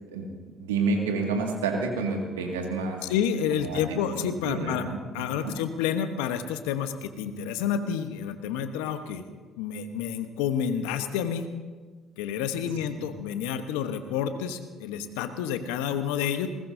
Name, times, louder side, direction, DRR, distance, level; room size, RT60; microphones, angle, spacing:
voice 1, 0.6-3.0 3.5-5.0 5.4-5.5 9.0-9.2, right 3 dB, 90° right, 1 dB, 2.1 m, -29 dB
voice 2, 3.1-4.9 5.1-9.2 9.6-11.5 12.2-16.5, left 8 dB, 80° left, 9 dB, 1.1 m, -29 dB
20.0 x 19.5 x 2.8 m, 1.3 s
hypercardioid pair, 55°, 0 cm